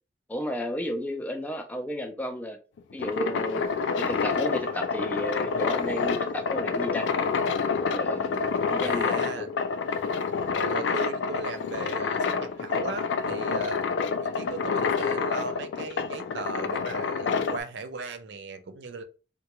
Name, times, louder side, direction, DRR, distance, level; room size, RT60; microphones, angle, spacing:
voice 1, 0.3-2.6 2.9-3.6 3.9-7.1 7.8-9.5, equal, 10° left, 0.4 m, -33 dB
sound 1, 2.8-17.6, left 5 dB, 85° left, 0.4 m, -28 dB
sound 2, 3.6-12.2, right 1 dB, 25° right, 0.7 m, -50 dB
voice 2, 8.8-9.5 10.5-13.8 14.2-19.0, right 4 dB, 75° right, 0.5 m, -37 dB
3.8 x 2.2 x 2.9 m
head